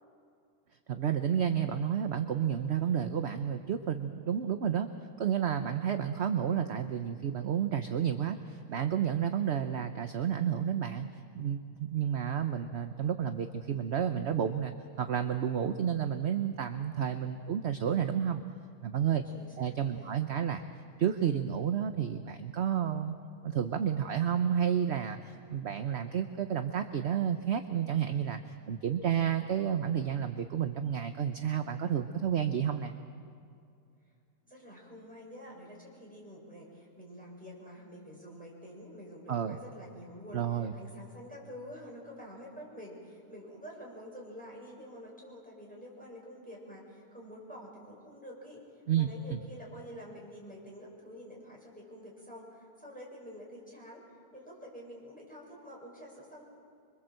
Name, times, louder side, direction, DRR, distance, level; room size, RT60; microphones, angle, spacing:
voice 1, 0.9-4.9 5.2-11.1 11.4-18.4 18.8-19.2 19.6-20.6 21.0-23.2 23.4-28.4 28.7-32.9 39.3-39.6 40.3-40.7 48.9-49.4, right 8 dB, 50° right, 8 dB, 1.0 m, -31 dB
voice 2, 19.2-20.3 34.5-40.4 40.7-48.6 48.9-54.0 54.3-56.4, equal, 5° left, -3 dB, 6.7 m, -48 dB
26.5 x 23.5 x 7.7 m, 2.4 s
omnidirectional pair, 1.7 m